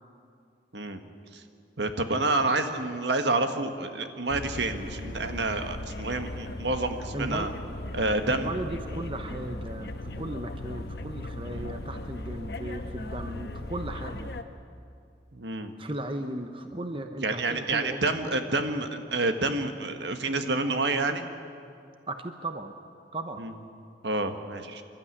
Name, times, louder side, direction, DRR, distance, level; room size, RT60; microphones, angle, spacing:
voice 1, 1.8-7.5 7.9-8.5 11.5-11.8 15.3-15.7 17.2-21.2 23.4-23.5 24.0-24.8, right 2 dB, 70° right, 7 dB, 1.5 m, -28 dB
sound 1, 4.3-14.4, left 1 dB, 60° left, 1.1 m, -38 dB
voice 2, 7.1-7.5 8.3-14.3 15.8-18.1 22.1-22.7 23.1-23.5, right 1 dB, 30° right, 6 dB, 0.9 m, -36 dB
27.0 x 13.0 x 9.8 m, 2.4 s
head